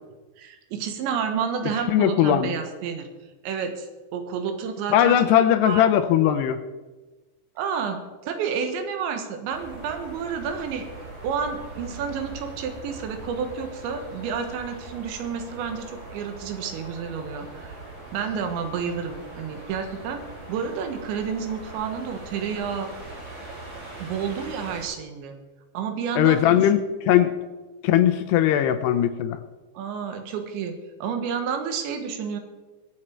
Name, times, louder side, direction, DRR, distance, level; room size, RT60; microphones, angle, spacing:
voice 1, 0.4-3.1 3.4-5.2 5.6-5.9 7.6-10.9 11.2-17.8 18.1-20.2 20.5-22.9 24.0-25.4 25.7-26.7 29.8-32.4, right 6 dB, 85° right, 6 dB, 3.6 m, -30 dB
voice 2, 1.9-2.6 4.9-6.6 26.2-27.3 27.8-29.4, left 11 dB, 80° left, 9 dB, 2.7 m, -19 dB
sound 1, 9.5-24.8, right 2 dB, 35° right, 4.6 m, -41 dB
22.0 x 7.5 x 4.5 m, 1.2 s
omnidirectional pair, 5.0 m